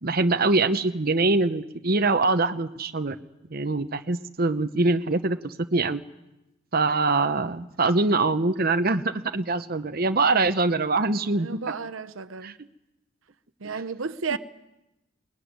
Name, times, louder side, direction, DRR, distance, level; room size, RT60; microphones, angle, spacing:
voice 1, 0.0-3.2 3.5-6.0 6.7-11.6 12.4-12.5 13.6-13.8 14.3-14.4, right 3 dB, 50° right, 1.0 m, -24 dB
voice 2, 11.3-12.5 13.6-14.4, right 5 dB, 90° right, 0.8 m, -33 dB
21.5 x 20.0 x 9.6 m
head